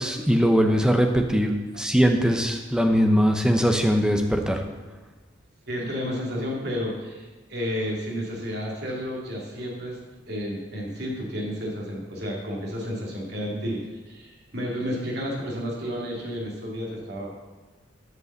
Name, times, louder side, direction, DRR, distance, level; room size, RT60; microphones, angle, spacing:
voice 1, 0.0-4.6, equal, 5° right, 4 dB, 0.8 m, -21 dB
voice 2, 5.7-10.0 10.3-13.8 14.1-17.3, equal, 60° right, -2 dB, 2.5 m, -31 dB
11.0 x 5.5 x 6.6 m, 1.2 s
head